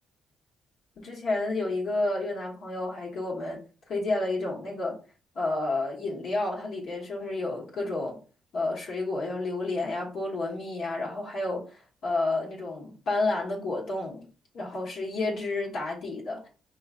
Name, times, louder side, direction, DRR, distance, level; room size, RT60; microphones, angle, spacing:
voice 1, 1.0-3.6 3.9-5.0 5.3-8.2 8.5-14.3 14.5-16.5, left 2 dB, 65° left, 1.2 m, -30 dB
4.8 x 3.1 x 2.4 m
cardioid pair, 90°, 0 cm